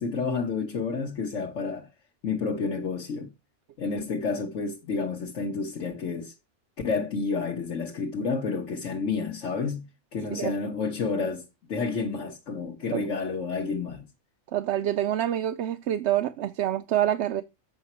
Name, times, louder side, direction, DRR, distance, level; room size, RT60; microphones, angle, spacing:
voice 1, 0.0-1.9 2.2-3.3 3.8-6.3 6.8-9.9 10.1-14.1, left 4 dB, 75° left, 1.5 m, -30 dB
voice 2, 14.5-17.4, right 11 dB, 65° right, 0.8 m, -26 dB
7.8 x 6.0 x 4.2 m
omnidirectional pair, 1.3 m